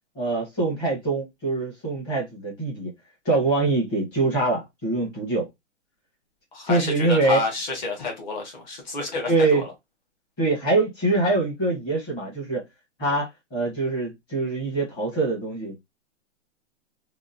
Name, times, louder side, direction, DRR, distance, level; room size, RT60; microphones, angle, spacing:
voice 1, 0.1-2.9 3.2-5.5 6.7-7.4 9.3-9.6 10.4-12.6 13.0-15.7, right 3 dB, 15° left, 0.9 m, -24 dB
voice 2, 6.5-9.7, left 3 dB, 35° left, 1.1 m, -29 dB
2.8 x 2.2 x 2.5 m
hypercardioid pair, 170°, 37 cm